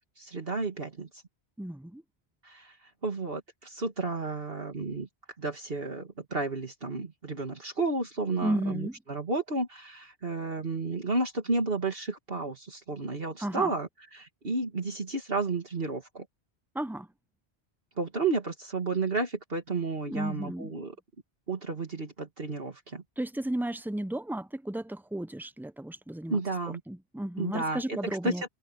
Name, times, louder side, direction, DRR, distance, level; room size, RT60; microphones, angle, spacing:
voice 1, 0.2-1.1 2.4-2.8 3.0-5.1 5.4-16.3 18.0-20.9 21.5-23.0 26.3-26.8 27.4-28.5, right 3 dB, 60° right, 2.5 m, -32 dB
voice 2, 1.6-2.0 8.4-9.0 13.4-13.7 16.7-17.1 20.1-20.7 23.2-28.5, right 1 dB, 5° right, 0.3 m, -34 dB
omnidirectional pair, 1.1 m